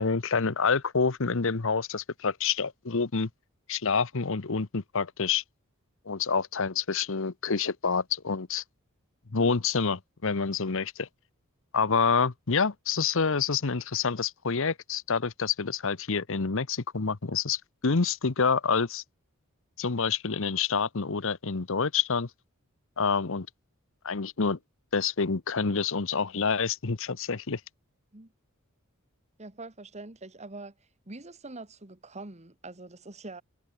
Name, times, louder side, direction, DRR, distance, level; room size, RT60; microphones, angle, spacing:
voice 1, 0.0-3.3 3.7-5.4 6.1-8.6 9.3-11.1 11.7-19.0 19.8-22.3 23.0-23.5 24.0-24.6 24.9-27.6, left 5 dB, 65° left, 1.0 m, -27 dB
voice 2, 29.4-30.7 31.1-33.4, right 2 dB, 30° right, 1.8 m, -44 dB
head